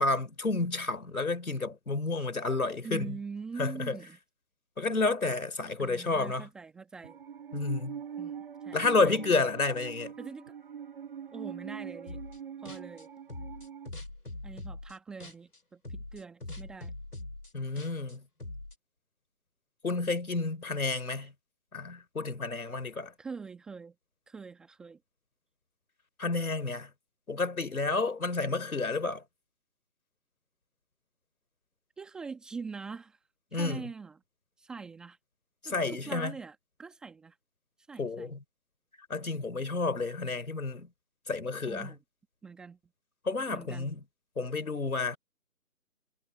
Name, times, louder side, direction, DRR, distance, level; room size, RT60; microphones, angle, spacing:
voice 1, 0.0-3.2 3.6-4.0 4.8-6.5 7.5-8.0 8.7-10.1 17.5-18.2 19.8-21.3 21.7-23.1 26.2-26.9 27.3-29.2 33.5-33.9 35.6-36.3 38.0-38.4 39.1-40.9 41.3-41.9 43.3-44.0 44.4-45.2, left 3 dB, 70° left, 3.8 m, -30 dB
voice 2, 2.8-4.2 5.8-7.2 8.2-9.1 10.2-10.6 11.3-12.2 12.6-13.1 14.4-16.9 23.2-23.9 24.3-25.0 32.0-33.2 33.5-34.2 34.6-35.2 35.6-37.4 37.9-38.3 41.7-42.0 42.4-42.8 43.5-43.9, right 5 dB, ahead, 1.3 m, -43 dB
Musical instrument, 7.0-13.9, right 8 dB, 40° right, 6.1 m, -43 dB
sound 1, 12.1-12.4 12.7-15.6 15.8-18.7, left 2 dB, 85° left, 5.5 m, -42 dB
figure-of-eight pair, 155°, 45 cm